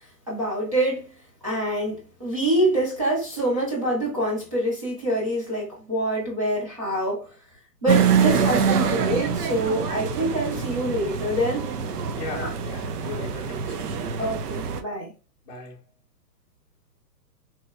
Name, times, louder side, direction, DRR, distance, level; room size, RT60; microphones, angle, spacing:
voice 1, 0.3-1.1 1.4-7.3 7.8-11.7 12.3-12.5 14.2-15.1, right 1 dB, 20° right, 0.4 m, -26 dB
sound 1, 7.9-14.8, right 7 dB, 70° right, 0.6 m, -25 dB
voice 2, 12.1-14.0 15.5-15.8, left 4 dB, 25° left, 0.6 m, -38 dB
3.0 x 2.1 x 2.2 m
hypercardioid pair, 160°, 49 cm